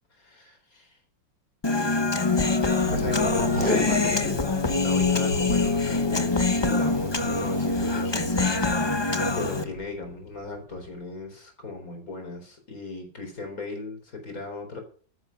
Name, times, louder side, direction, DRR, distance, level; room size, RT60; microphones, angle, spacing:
voice 1, 0.1-1.0 2.9-4.2 4.6-8.5 9.4-14.8, left 3 dB, 50° left, 4 dB, 4.5 m, -37 dB
Human voice, 1.6-9.6, left 3 dB, 25° left, 0.6 m, -24 dB
Thunder, 2.8-11.0, right 1 dB, 80° right, 6.5 m, -37 dB
Packing tape duct tape, 3.4-4.5 4.9-5.0 5.2-5.3 5.8-6.2 7.2-7.4 8.0-8.1, left 2 dB, 5° left, 2.4 m, -31 dB
13.0 x 10.0 x 5.8 m, 0.43 s
omnidirectional pair, 2.0 m